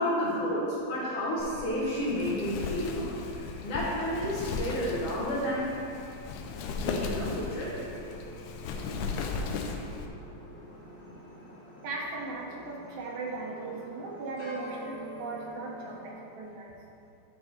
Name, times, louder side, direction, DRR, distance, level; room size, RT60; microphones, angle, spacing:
voice 1, 0.0-5.8 6.8-7.8, left 1 dB, 60° left, -7 dB, 1.7 m, -31 dB
Wind, 1.4-10.1, left 4 dB, 85° left, 2.0 m, -36 dB
sound 1, 6.8-16.1, equal, 40° left, 1.1 m, -47 dB
voice 2, 11.8-16.8, right 3 dB, 75° right, -2 dB, 2.0 m, -38 dB
9.8 x 3.6 x 4.2 m, 2.8 s
omnidirectional pair, 3.5 m